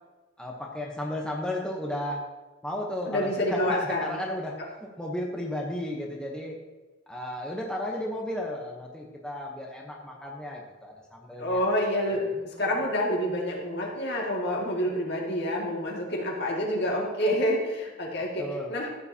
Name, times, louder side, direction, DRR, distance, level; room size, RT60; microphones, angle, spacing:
voice 1, 0.4-2.2 2.6-4.5 5.0-6.6 7.1-11.7 12.1-12.3 12.5-12.6 18.4-18.7, left 1 dB, 5° left, -2 dB, 1.0 m, -34 dB
voice 2, 3.1-4.1 11.4-18.9, left 1 dB, 55° left, -2 dB, 2.2 m, -28 dB
14.0 x 7.8 x 2.9 m, 1.2 s
head